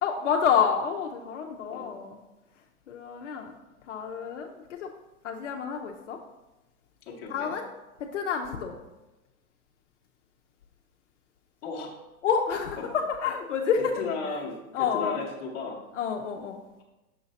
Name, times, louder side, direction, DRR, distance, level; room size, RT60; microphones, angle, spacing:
voice 1, 0.0-2.2 2.9-3.5 3.9-4.9 5.2-6.2 7.3-7.7 8.0-8.8 12.2-13.9 14.7-15.2 15.9-16.6, left 7 dB, 55° left, 2 dB, 0.7 m, -28 dB
voice 2, 7.1-7.5 11.6-11.9 12.8-12.9 14.0-15.8, left 4 dB, 20° left, -3 dB, 0.9 m, -35 dB
6.6 x 3.9 x 4.0 m, 1.0 s
hypercardioid pair, 155°, 43 cm